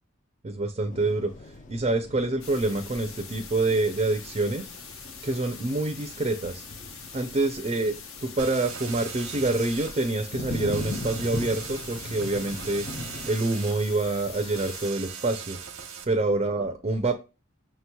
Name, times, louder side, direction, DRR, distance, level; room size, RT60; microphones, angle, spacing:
voice 1, 0.4-1.3 1.7-4.6 5.2-6.6 7.1-12.8 13.3-15.6 16.1-17.2, right 2 dB, 30° right, 7 dB, 0.4 m, -26 dB
sound 1, 0.9-13.3, left 2 dB, 35° left, 0.4 m, -40 dB
sound 2, 2.4-14.9, left 5 dB, 75° left, 0.9 m, -44 dB
sound 3, 8.4-16.0, right 7 dB, 90° right, 0.9 m, -40 dB
5.8 x 2.9 x 2.2 m, 0.30 s
head